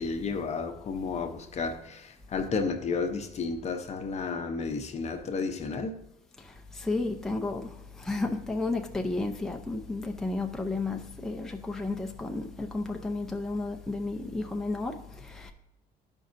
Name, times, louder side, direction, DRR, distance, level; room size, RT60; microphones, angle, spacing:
voice 1, 0.0-6.0, left 4 dB, 40° left, 0.7 m, -32 dB
voice 2, 6.4-15.5, left 2 dB, 5° left, 0.5 m, -32 dB
12.5 x 5.3 x 2.6 m
cardioid pair, 110°, 17 cm